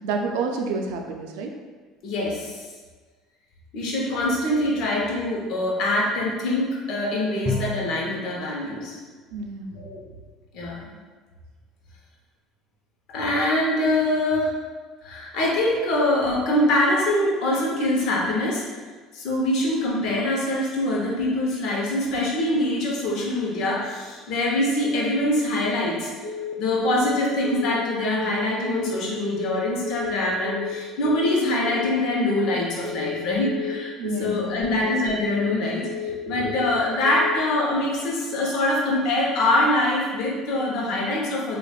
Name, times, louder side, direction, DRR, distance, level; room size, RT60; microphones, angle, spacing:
voice 1, 0.0-1.5 9.3-9.8 34.0-34.8 36.3-36.5, right 4 dB, 85° right, 3 dB, 0.4 m, -29 dB
voice 2, 2.0-2.6 3.7-9.0 9.7-10.0 10.5-10.9 13.1-14.5 15.0-18.6 19.1-26.1 26.6-41.6, left 1 dB, 65° left, -3 dB, 0.8 m, -24 dB
Bowed string instrument, 7.5-8.3, left 2 dB, ahead, 0.3 m, -29 dB
Telephone, 26.2-26.5 26.8-27.1 27.4-27.7 28.0-28.3 28.6-28.9 29.2-29.5 29.8-30.1 30.4-30.7 31.0-31.3 31.6-31.9 32.2-32.5 32.8-33.1 33.4-33.7 34.0-34.3 34.6-34.9 35.2-35.5 35.8-36.1 36.4-36.7 37.0-37.3, left 6 dB, 85° left, 0.4 m, -32 dB
5.0 x 2.4 x 2.3 m, 1.4 s
cardioid pair, 115°, 0 cm